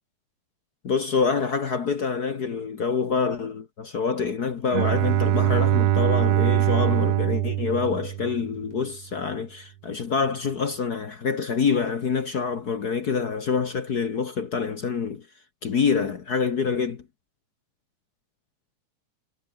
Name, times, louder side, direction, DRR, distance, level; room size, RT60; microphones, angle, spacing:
voice 1, 0.8-15.2 15.6-17.0, left 5 dB, 50° left, 1.2 m, -26 dB
Bowed string instrument, 4.7-8.7, right 13 dB, 65° right, 1.9 m, -22 dB
omnidirectional pair, 3.6 m